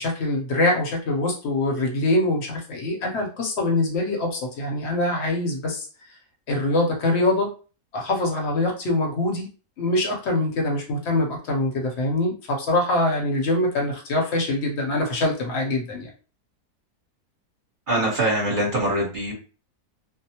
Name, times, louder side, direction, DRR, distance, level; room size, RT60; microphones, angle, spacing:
voice 1, 0.0-5.9 6.5-7.5 7.9-9.5 9.8-16.1, left 2 dB, 55° left, 0 dB, 0.8 m, -24 dB
voice 2, 17.9-19.3, right 1 dB, 40° right, -2 dB, 0.9 m, -23 dB
2.6 x 2.0 x 2.8 m, 0.36 s
omnidirectional pair, 1.7 m